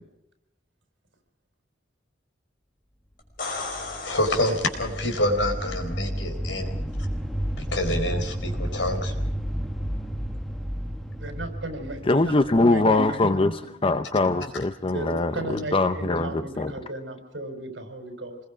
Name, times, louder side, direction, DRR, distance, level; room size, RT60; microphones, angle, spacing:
sound 1, 3.2-5.1 8.8-8.9, left 3 dB, 50° left, 5.7 m, -36 dB
sound 2, 3.5-13.3, equal, ahead, 1.1 m, -32 dB
voice 1, 4.0-6.8 7.6-9.1, left 1 dB, 75° left, 4.2 m, -27 dB
voice 2, 11.2-13.3 13.6-13.7 14.9-18.4, right 1 dB, 70° right, 4.5 m, -35 dB
voice 3, 12.0-16.7, left 2 dB, 30° left, 0.7 m, -22 dB
26.5 x 21.0 x 5.0 m
head